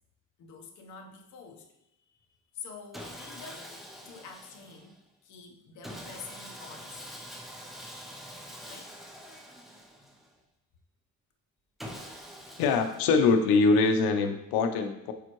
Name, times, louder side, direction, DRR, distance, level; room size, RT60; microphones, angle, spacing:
voice 1, 0.4-1.7 2.5-5.0 5.2-7.1 8.7-8.9 12.4-12.6, left 5 dB, 55° left, 3 dB, 1.0 m, -47 dB
Sawing, 2.9-5.0 5.8-10.4 11.8-13.6, equal, ahead, 0.6 m, -45 dB
voice 2, 12.6-15.1, left 4 dB, 85° left, 6 dB, 0.7 m, -23 dB
7.2 x 4.4 x 3.0 m, 0.84 s
cardioid pair, 150°, 35 cm